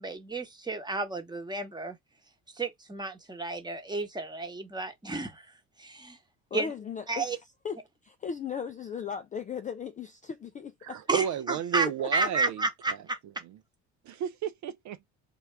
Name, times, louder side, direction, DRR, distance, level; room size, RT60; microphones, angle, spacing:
voice 1, 0.0-2.0 2.5-5.5 5.8-6.2 6.5-6.7 7.1-7.4 11.1-13.2, right 3 dB, 10° right, 1.1 m, -32 dB
voice 2, 6.5-7.3 7.6-7.8 8.0-11.0 12.0-12.3, left 7 dB, 20° left, 0.3 m, -37 dB
voice 3, 10.8-12.6 14.1-15.1, right 9 dB, 50° right, 0.5 m, -32 dB
3.4 x 2.3 x 3.3 m
hypercardioid pair, 65°, 39 cm